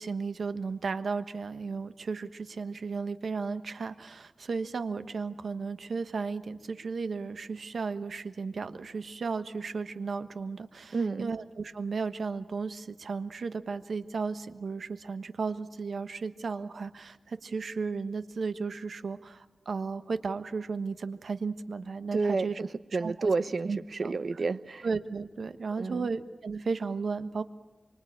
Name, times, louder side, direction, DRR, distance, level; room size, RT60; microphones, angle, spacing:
voice 1, 0.0-22.6 23.0-23.3 23.7-24.1 24.8-27.4, right 4 dB, 75° right, 10 dB, 1.3 m, -34 dB
voice 2, 10.9-11.3 22.1-24.9 25.8-26.1, right 4 dB, 60° right, 13 dB, 0.9 m, -30 dB
26.0 x 24.5 x 8.8 m, 1.1 s
wide cardioid pair, 120°, 0 cm